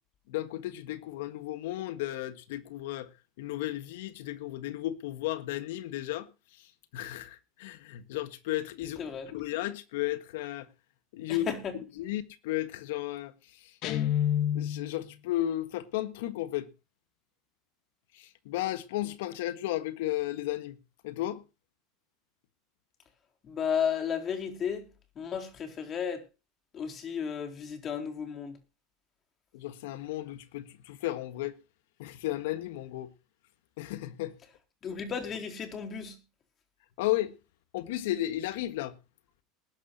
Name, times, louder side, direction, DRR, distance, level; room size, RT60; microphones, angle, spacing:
voice 1, 0.3-3.1 3.4-6.3 6.6-6.7 6.9-9.0 9.3-10.7 11.1-11.5 12.0-13.7 14.5-16.7 18.1-20.8 21.0-21.4 29.5-31.5 32.0-33.1 33.8-34.3 37.0-37.3 37.7-38.9, left 14 dB, 75° left, 1.6 m, -34 dB
voice 2, 9.0-9.3 11.3-11.8 23.4-24.9 25.2-26.2 26.7-28.6 34.8-36.2, left 7 dB, 40° left, 4.1 m, -33 dB
Guitar, 13.8-15.0, left 10 dB, 60° left, 2.1 m, -28 dB
20.0 x 11.5 x 2.9 m
hypercardioid pair, 90°, 0 cm